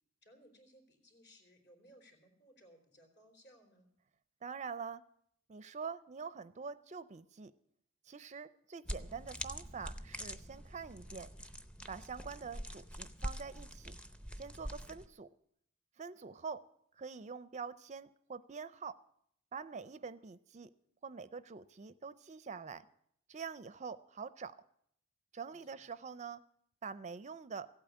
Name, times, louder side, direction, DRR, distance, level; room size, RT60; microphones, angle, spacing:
voice 1, 0.2-3.9 14.8-15.0 25.5-25.6, equal, 55° left, 4 dB, 3.7 m, -62 dB
voice 2, 4.4-5.0 5.5-7.5 8.1-11.3 11.9-13.9 14.4-15.3 16.0-16.6 17.0-19.0 19.5-20.7 21.0-22.9 23.3-24.5 25.3-26.4 26.8-27.7, right 5 dB, 35° right, 14 dB, 0.5 m, -45 dB
sound 1, 8.9-15.1, equal, 5° left, 0.6 m, -45 dB
15.5 x 8.7 x 8.3 m, 0.71 s
head